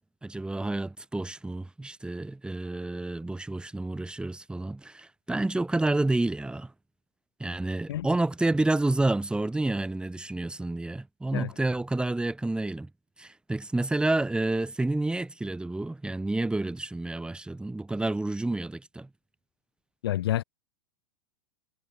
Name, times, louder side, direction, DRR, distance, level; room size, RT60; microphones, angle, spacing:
voice 1, 0.2-6.7 7.4-12.9 13.2-19.1, right 2 dB, 5° right, 5.3 m, -29 dB
voice 2, 20.0-20.4, left 13 dB, 70° left, 2.5 m, -28 dB
hypercardioid pair, 100°, 13 cm